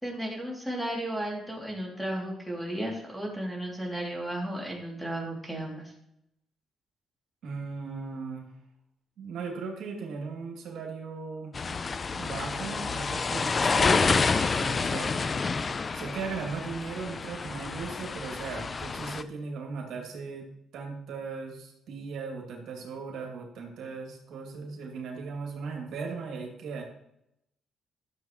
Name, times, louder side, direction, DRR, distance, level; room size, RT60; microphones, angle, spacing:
voice 1, 0.0-5.9, right 1 dB, ahead, -2 dB, 2.7 m, -34 dB
voice 2, 7.4-8.5 9.2-11.6 12.1-15.1 15.9-20.5 20.7-26.8, right 4 dB, 75° right, 0 dB, 2.3 m, -38 dB
sound 1, 11.5-19.2, left 4 dB, 35° left, 0.4 m, -28 dB
12.5 x 7.3 x 3.1 m, 0.80 s
cardioid pair, 100°, 0 cm